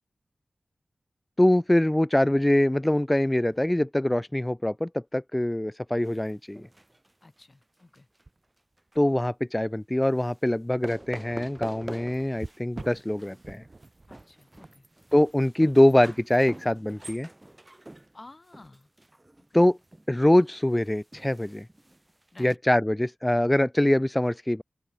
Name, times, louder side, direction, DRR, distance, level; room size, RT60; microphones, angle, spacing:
voice 1, 1.4-6.7 9.0-13.6 15.1-17.3 19.5-19.8 20.1-21.7 22.4-24.6, left 1 dB, 15° left, 0.7 m, -23 dB
sound 1, 3.3-3.6 5.1-5.3 5.9-6.0 8.2-9.1 9.6-9.8 12.3-15.9 19.8-20.0, right 2 dB, 45° right, 4.0 m, -46 dB
sound 2, 6.0-8.2 8.6-9.0 10.0-10.5 10.8-12.6 12.9-22.6, right 1 dB, 20° right, 1.5 m, -46 dB
voice 2, 7.2-8.1 14.1-14.9 18.1-18.9 19.5-19.6 22.3-22.6, left 2 dB, 40° left, 4.5 m, -51 dB
open air
cardioid pair, 50°, 0 cm